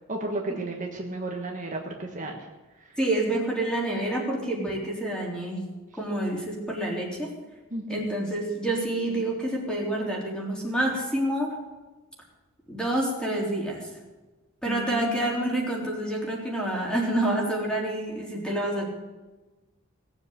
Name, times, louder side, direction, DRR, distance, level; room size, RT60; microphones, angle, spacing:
voice 1, 0.1-2.5 2.8-3.0 4.6-4.8 7.7-8.1 14.6-15.3, right 2 dB, 35° right, 1 dB, 1.5 m, -34 dB
voice 2, 3.0-5.6 6.0-7.3 7.9-11.6 12.7-13.9 14.6-18.9, right 1 dB, 5° left, -2 dB, 3.6 m, -28 dB
18.5 x 7.6 x 8.2 m, 1.2 s
head